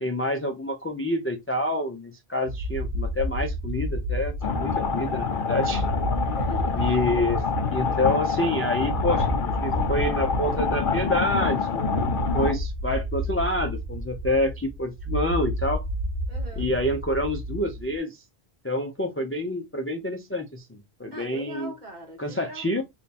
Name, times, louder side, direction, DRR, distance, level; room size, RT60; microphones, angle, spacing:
voice 1, 0.0-5.9 6.8-7.4 7.7-15.9 16.6-18.2 18.6-21.7 22.2-22.8, left 1 dB, 20° left, 0.3 m, -28 dB
sound 1, 2.4-18.0, equal, 85° right, 1.1 m, -31 dB
sound 2, 4.4-12.5, left 5 dB, 60° left, 0.8 m, -26 dB
voice 2, 6.1-7.0 16.3-16.7 21.1-22.8, equal, 45° right, 1.5 m, -41 dB
3.3 x 2.3 x 4.0 m
omnidirectional pair, 1.0 m